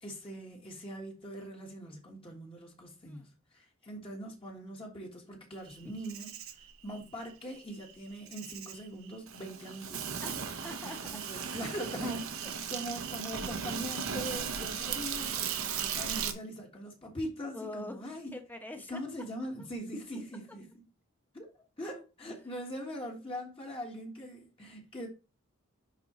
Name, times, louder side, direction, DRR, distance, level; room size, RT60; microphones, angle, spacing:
voice 1, 0.0-6.3 6.8-10.2 11.1-18.4 18.9-20.9 21.3-25.1, equal, 25° left, 1.4 m, -42 dB
Insect, 5.7-16.3, right 7 dB, 70° right, 1.0 m, -37 dB
voice 2, 10.2-11.2 17.5-19.0 21.8-22.0, left 2 dB, 10° left, 1.0 m, -44 dB
10.5 x 3.8 x 3.0 m
head